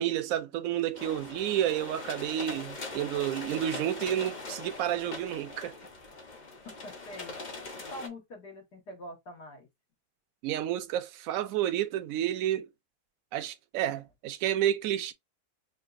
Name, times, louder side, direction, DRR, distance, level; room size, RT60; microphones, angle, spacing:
voice 1, 0.0-5.7 10.4-12.7 13.3-15.1, right 11 dB, 70° right, 0.9 m, -30 dB
sound 1, 0.9-8.1, left 3 dB, 35° left, 0.8 m, -41 dB
voice 2, 6.7-9.7, left 1 dB, 85° left, 2.3 m, -45 dB
5.6 x 2.6 x 2.5 m
omnidirectional pair, 1.7 m